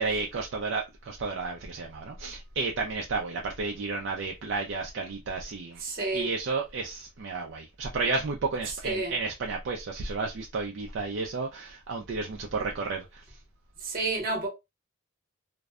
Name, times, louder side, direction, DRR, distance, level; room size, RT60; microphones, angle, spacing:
voice 1, 0.0-5.8 6.1-13.2, right 4 dB, 65° right, 0.4 m, -32 dB
voice 2, 5.8-6.3 8.7-9.1 13.8-14.5, right 3 dB, 45° right, 0.9 m, -30 dB
2.6 x 2.1 x 2.3 m
head